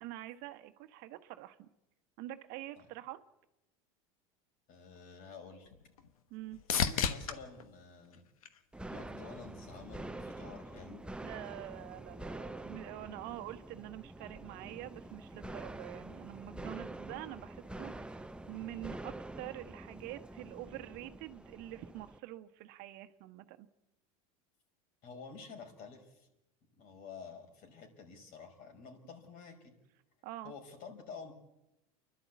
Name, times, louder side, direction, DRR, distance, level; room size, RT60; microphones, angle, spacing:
voice 1, 0.0-1.7 2.2-3.2 6.3-6.6 11.2-18.2 18.5-23.7 30.2-30.5, right 15 dB, 60° right, 10 dB, 1.2 m, -46 dB
voice 2, 4.7-5.7 6.7-8.2 8.9-11.0 25.0-26.3 26.8-29.7 30.4-31.3, left 5 dB, 55° left, 4 dB, 5.2 m, -50 dB
sound 1, 5.0-9.2 9.7-10.3 18.1-18.2, left 7 dB, 90° left, 1.3 m, -37 dB
sound 2, 8.7-22.2, right 2 dB, 5° right, 0.7 m, -46 dB
29.5 x 11.5 x 8.3 m, 0.93 s
hypercardioid pair, 95°, 18 cm